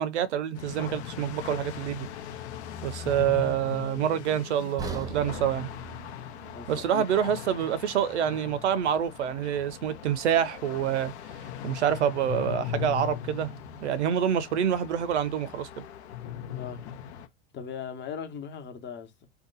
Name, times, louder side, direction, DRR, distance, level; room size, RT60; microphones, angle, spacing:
voice 1, 0.0-2.1 2.8-5.7 6.7-11.1 11.6-13.5 13.8-15.8, right 9 dB, 80° right, 0.7 m, -27 dB
sound 1, 0.5-17.3, left 9 dB, 70° left, 0.8 m, -39 dB
sound 2, 4.8-8.8 9.2-9.4 9.9-10.0, right 3 dB, 10° right, 0.7 m, -42 dB
voice 2, 6.4-7.0 16.5-16.8 17.5-19.3, left 7 dB, 30° left, 1.0 m, -39 dB
2.8 x 2.2 x 3.9 m
hypercardioid pair, 100°, 34 cm